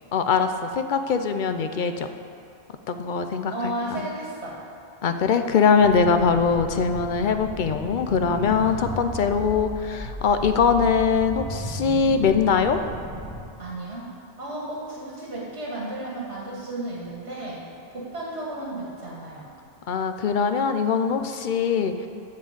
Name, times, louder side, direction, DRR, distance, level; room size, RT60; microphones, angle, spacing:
voice 1, 0.1-2.1 2.9-4.1 5.0-12.8 19.9-21.9, left 6 dB, 55° left, 8 dB, 0.6 m, -22 dB
voice 2, 3.5-4.6 8.7-9.0 13.6-14.1 14.4-17.6 17.9-19.4, right 2 dB, 80° right, -5 dB, 2.0 m, -33 dB
sound 1, 5.8-13.4, equal, ahead, 1.9 m, -35 dB
11.5 x 4.4 x 7.9 m, 2.5 s
omnidirectional pair, 1.1 m